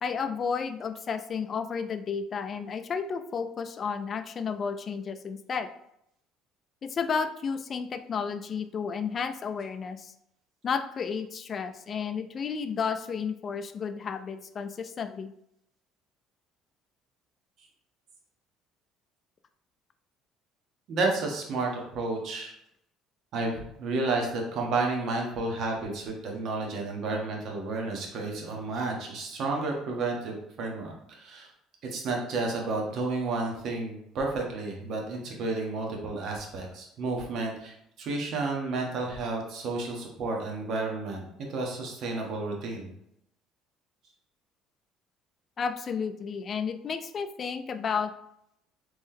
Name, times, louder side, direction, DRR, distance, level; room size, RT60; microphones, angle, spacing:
voice 1, 0.0-5.7 6.8-10.1 10.6-15.3 45.6-48.1, left 6 dB, 40° left, 10 dB, 0.3 m, -32 dB
voice 2, 20.9-22.5 23.3-31.5 31.8-42.9, right 3 dB, 60° right, 0 dB, 0.9 m, -31 dB
3.7 x 3.1 x 2.7 m, 0.76 s
cardioid pair, 110°, 0 cm